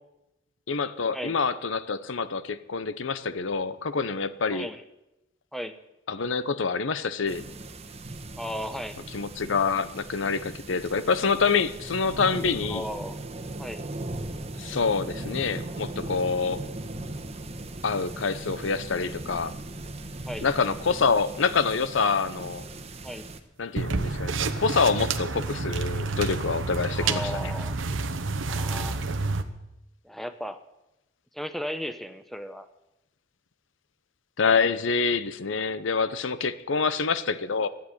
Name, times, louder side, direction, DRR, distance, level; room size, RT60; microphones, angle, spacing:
voice 1, 0.7-4.7 6.1-7.4 9.1-12.8 14.6-16.6 17.8-19.5 20.4-22.6 23.6-27.5 34.4-37.7, left 5 dB, 80° left, 14 dB, 0.7 m, -26 dB
voice 2, 4.5-4.8 5.5-5.7 8.4-9.0 12.7-13.2 13.6-13.8 20.3-20.4 23.0-23.3 27.0-27.7 28.5-29.0 30.0-30.6 31.3-32.7, equal, ahead, 9 dB, 0.8 m, -35 dB
sound 1, 7.3-23.4, right 2 dB, 35° right, 1.1 m, -38 dB
sound 2, 23.8-29.4, right 3 dB, 85° right, 1.0 m, -29 dB
13.5 x 8.7 x 9.6 m, 0.92 s
head